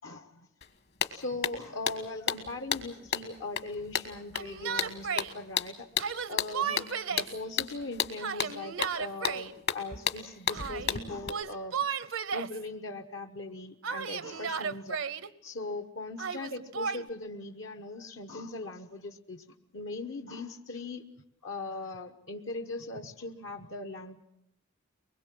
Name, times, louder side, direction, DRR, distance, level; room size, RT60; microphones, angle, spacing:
voice 1, 0.0-0.5 1.1-5.9 6.3-11.8 12.3-15.0 15.4-19.4 19.7-21.0 21.4-24.2, left 2 dB, 70° left, 6 dB, 1.1 m, -40 dB
sound 1, 0.6-0.7 1.0-11.3, left 8 dB, 55° left, 1.5 m, -33 dB
Yell, 4.3-5.3 6.0-7.4 8.2-9.5 10.5-11.0 11.3-12.6 13.8-15.3 16.2-17.0, right 6 dB, 80° right, 0.8 m, -34 dB
23.0 x 21.0 x 7.6 m, 0.80 s
head